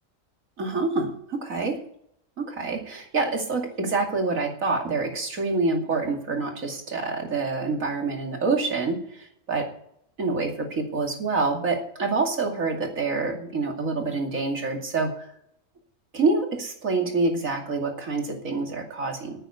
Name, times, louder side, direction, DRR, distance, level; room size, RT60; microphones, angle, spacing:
voice 1, 0.6-1.8 2.4-9.0 9.5-9.7 10.2-15.3 16.1-19.4, right 3 dB, 85° right, 2 dB, 2.9 m, -26 dB
9.4 x 9.0 x 8.2 m, 0.68 s
omnidirectional pair, 1.4 m